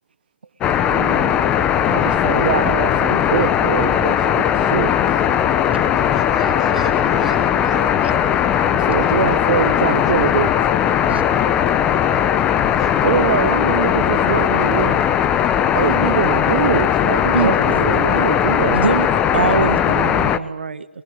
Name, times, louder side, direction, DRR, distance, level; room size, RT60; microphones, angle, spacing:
sound 1, 0.6-20.4, left 9 dB, 15° left, 0.9 m, -18 dB
voice 1, 0.9-1.4 1.9-5.2 8.7-10.5 13.0-15.0 15.7-18.8, right 8 dB, 45° right, 10 dB, 0.9 m, -23 dB
voice 2, 1.4-2.6 5.5-8.0 8.9-10.5 11.3-12.1 12.7-13.5, right 3 dB, ahead, -5 dB, 5.8 m, -37 dB
voice 3, 18.7-20.9, right 5 dB, 65° right, 10 dB, 1.5 m, -22 dB
26.0 x 21.5 x 8.3 m, 0.88 s
figure-of-eight pair, 140°, 6 cm